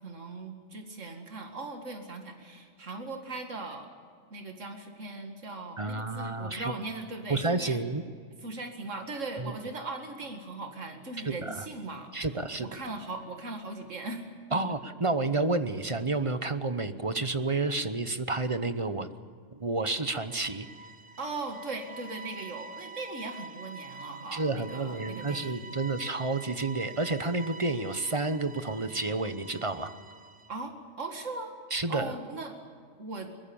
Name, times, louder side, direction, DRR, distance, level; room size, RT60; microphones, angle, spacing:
voice 1, 0.0-3.9 4.3-7.8 8.4-12.1 12.6-14.3 21.2-25.6 30.5-31.5 31.9-32.6 33.0-33.3, right 3 dB, 85° right, 5 dB, 2.4 m, -39 dB
voice 2, 5.8-6.7 7.3-8.0 11.2-11.6 12.1-12.8 14.5-19.1 19.6-20.7 24.3-29.9 31.7-32.1, right 3 dB, 30° right, 11 dB, 0.9 m, -30 dB
sound 1, 19.8-30.6, right 3 dB, 45° right, 1.2 m, -46 dB
23.0 x 21.0 x 7.1 m, 2.1 s
omnidirectional pair, 1.3 m